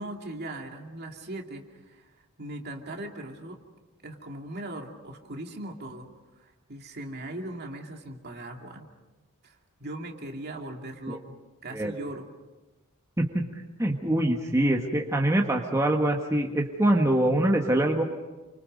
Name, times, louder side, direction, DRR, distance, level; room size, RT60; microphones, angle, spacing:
voice 1, 0.0-2.1 2.4-3.6 4.0-6.1 6.4-8.9 9.4-11.3 11.6-12.3, right 1 dB, 50° right, 2 dB, 2.5 m, -39 dB
voice 2, 13.8-18.0, right 1 dB, 15° right, 1 dB, 1.4 m, -24 dB
29.0 x 25.0 x 5.4 m, 1.2 s
head